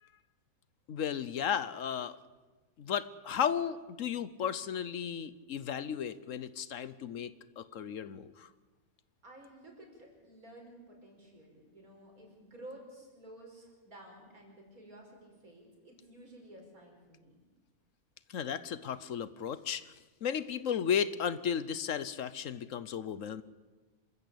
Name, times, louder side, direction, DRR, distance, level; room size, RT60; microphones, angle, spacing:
voice 1, 0.9-2.1 2.8-7.3 7.6-8.5 18.3-19.9 20.2-23.4, left 8 dB, 65° left, 15 dB, 1.2 m, -34 dB
voice 2, 9.2-17.3, right 1 dB, 85° right, 1 dB, 5.8 m, -53 dB
26.5 x 14.5 x 8.6 m, 1.3 s
omnidirectional pair, 1.5 m